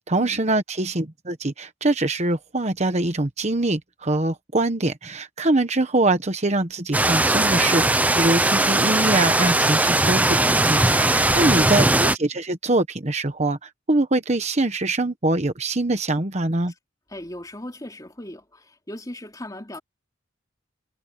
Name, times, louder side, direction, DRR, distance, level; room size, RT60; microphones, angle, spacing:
voice 1, 0.1-16.7, right 2 dB, 35° right, 1.2 m, -23 dB
sound 1, 6.9-12.2, right 2 dB, 10° right, 0.7 m, -19 dB
voice 2, 17.1-19.8, left 1 dB, 20° left, 3.2 m, -38 dB
head